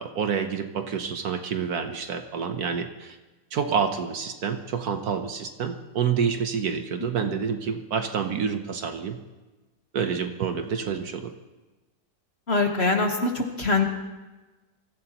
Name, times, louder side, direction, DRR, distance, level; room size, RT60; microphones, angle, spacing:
voice 1, 0.0-3.2 3.5-9.2 9.9-11.3, right 6 dB, 60° right, 7 dB, 1.2 m, -28 dB
voice 2, 12.5-13.8, left 3 dB, 40° left, 3 dB, 1.4 m, -24 dB
24.0 x 15.0 x 3.0 m, 1.2 s
omnidirectional pair, 1.9 m